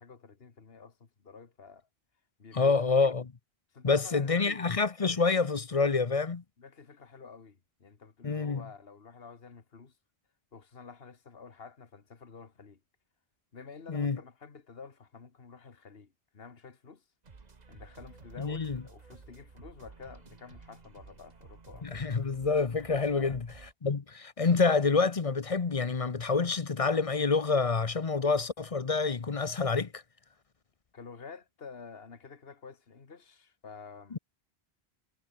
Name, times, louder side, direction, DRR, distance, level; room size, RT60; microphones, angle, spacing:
voice 1, 0.0-1.9 2.4-3.0 3.7-4.9 6.6-10.0 10.5-12.8 13.5-17.1 17.7-22.1 23.1-23.4 30.9-34.2, left 5 dB, 70° left, 1.9 m, -50 dB
voice 2, 2.5-3.3 3.8-6.4 8.2-8.6 13.9-14.2 18.4-18.8 21.8-23.5 23.8-30.0 34.1-34.2, left 4 dB, 35° left, 0.9 m, -27 dB
sound 1, 17.2-23.7, right 4 dB, 40° right, 1.4 m, -53 dB
omnidirectional pair, 1.1 m